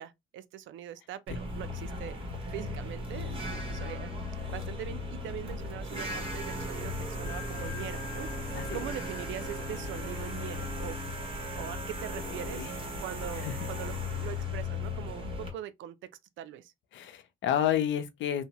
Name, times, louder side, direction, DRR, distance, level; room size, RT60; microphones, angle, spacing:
voice 1, 0.0-12.7 13.0-16.1 16.4-16.7, right 11 dB, 75° right, 0.4 m, -42 dB
sound 1, 1.3-15.5, left 2 dB, 25° right, 1.2 m, -36 dB
Wind instrument woodwind instrument, 7.1-12.3, left 7 dB, 45° right, 0.8 m, -48 dB
voice 2, 12.3-12.7 13.4-13.5 16.9-18.4, left 10 dB, 70° left, 0.5 m, -30 dB
2.7 x 2.1 x 2.8 m
cardioid pair, 90°, 20 cm